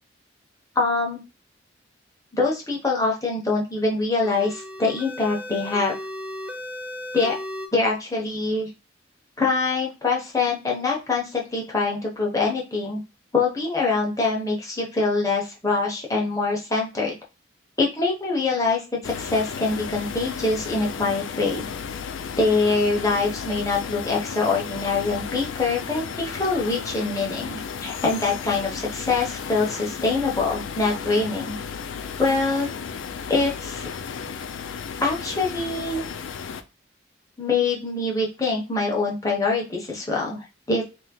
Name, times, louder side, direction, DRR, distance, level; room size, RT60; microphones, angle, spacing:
voice 1, 0.8-1.2 2.3-5.9 7.1-7.3 7.7-8.7 9.4-13.0 13.3-17.2 17.8-21.7 22.4-31.6 32.2-32.7 33.3-33.8 35.0-36.0 37.4-40.8, left 3 dB, 15° left, -2 dB, 0.8 m, -24 dB
sound 1, 4.2-7.7, left 1 dB, 5° right, 0.3 m, -35 dB
sound 2, 19.0-36.6, left 6 dB, 80° left, 0.4 m, -34 dB
3.4 x 3.1 x 2.2 m, 0.29 s
head